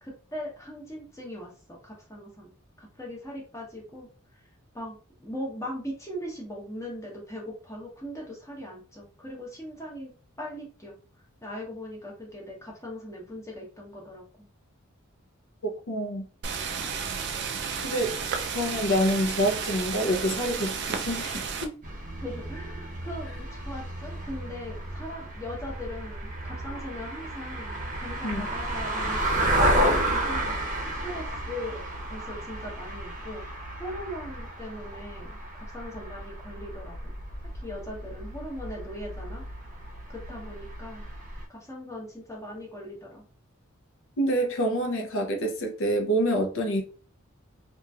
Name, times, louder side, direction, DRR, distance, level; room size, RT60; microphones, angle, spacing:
voice 1, 0.0-2.5 2.8-4.1 4.7-10.1 10.4-10.9 11.4-14.5 22.2-29.2 30.1-30.6 31.0-31.8 32.1-37.1 37.6-39.4 40.1-41.1 41.5-43.2, left 1 dB, 15° left, 0.9 m, -40 dB
voice 2, 15.6-16.2 17.8-18.2 18.5-21.7 28.2-28.5 44.2-46.8, equal, 60° left, 0.7 m, -27 dB
sound 1, 16.4-21.7, right 6 dB, 50° right, 0.4 m, -32 dB
sound 2, 21.8-41.4, right 1 dB, 35° right, 0.8 m, -32 dB
2.9 x 2.6 x 2.3 m
head